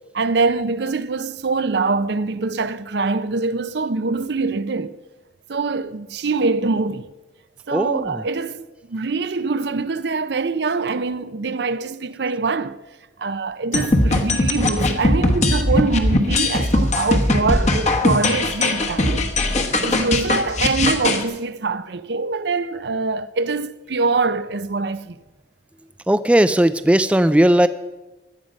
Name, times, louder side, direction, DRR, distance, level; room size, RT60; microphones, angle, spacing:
voice 1, 0.1-4.9 5.5-7.1 7.7-12.8 13.2-19.3 19.8-25.2, right 3 dB, 70° right, 0.6 m, -24 dB
voice 2, 7.7-8.2 26.1-27.7, right 1 dB, 5° right, 0.3 m, -17 dB
sound 1, 13.7-21.2, left 2 dB, 40° left, 1.2 m, -19 dB
17.0 x 11.5 x 5.2 m
head